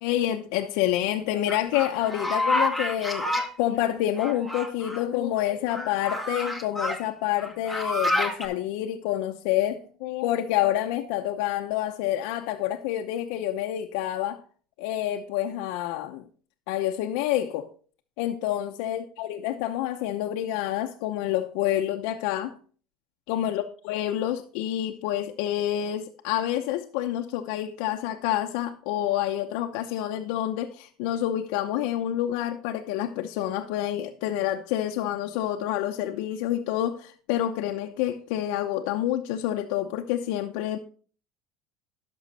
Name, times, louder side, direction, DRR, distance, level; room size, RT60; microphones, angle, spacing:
voice 1, 0.0-14.4 14.8-16.2 16.7-17.7 18.2-22.6 23.3-40.8, left 12 dB, 75° left, 0.7 m, -28 dB
sound 1, 1.5-3.5 4.2-5.0 5.7-7.0 7.4-8.5, left 1 dB, 5° right, 1.3 m, -28 dB
11.5 x 6.2 x 4.2 m
cardioid pair, 135°, 0 cm